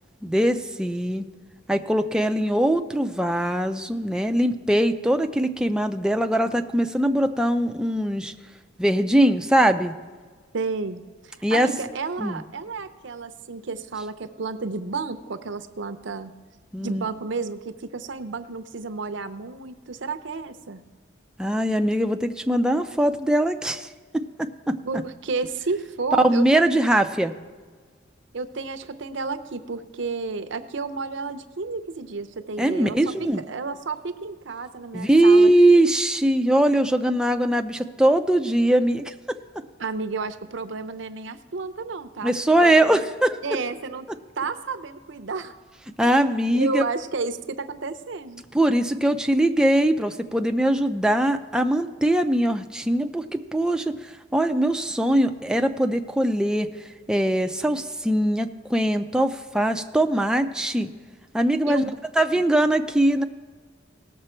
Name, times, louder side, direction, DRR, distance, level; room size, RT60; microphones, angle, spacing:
voice 1, 0.2-1.2 1.7-8.3 8.8-9.9 11.4-11.7 12.2-12.4 16.7-17.1 21.4-24.8 26.2-27.3 32.6-33.4 34.9-39.4 42.2-43.6 46.0-46.8 48.5-56.7 57.1-60.9 61.3-61.9 62.2-63.2, right 1 dB, 5° right, 6 dB, 0.5 m, -21 dB
voice 2, 10.5-16.3 16.8-20.8 24.8-26.7 28.3-33.1 33.5-35.5 39.8-42.3 42.6-43.0 43.4-44.1 44.4-45.5 46.0-46.1 46.5-48.4 61.7-61.9 62.3-62.4, right 4 dB, 70° right, 8 dB, 0.7 m, -31 dB
18.0 x 6.7 x 4.4 m, 1.5 s
head